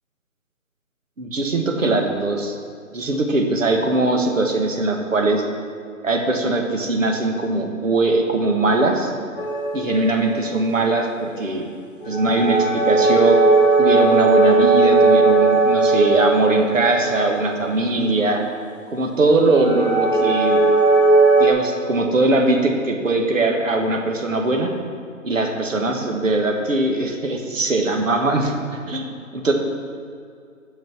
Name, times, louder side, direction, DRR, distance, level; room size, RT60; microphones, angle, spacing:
voice 1, 1.2-2.5 2.9-5.4 6.0-9.1 9.7-11.7 12.1-13.4 13.8-18.4 18.9-20.6 21.4-24.7 25.2-29.5, right 2 dB, 70° right, 2 dB, 1.7 m, -20 dB
sound 1, 9.4-11.1 12.1-18.1 19.6-21.5, right 3 dB, 40° left, 0.9 m, -18 dB
8.5 x 6.0 x 5.9 m, 2.4 s
hypercardioid pair, 180°, 41 cm